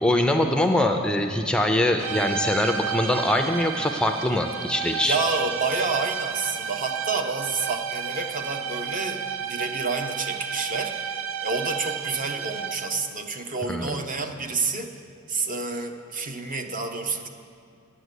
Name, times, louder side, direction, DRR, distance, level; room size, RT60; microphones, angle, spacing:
voice 1, 0.0-5.2 13.7-14.0, left 1 dB, 5° left, 4 dB, 0.4 m, -23 dB
sound 1, 2.0-13.1, right 7 dB, 75° right, 0.5 m, -32 dB
voice 2, 5.0-11.1 11.4-15.0 15.3-17.3, right 3 dB, 40° right, 6 dB, 0.7 m, -29 dB
9.2 x 7.3 x 8.1 m, 2.3 s
head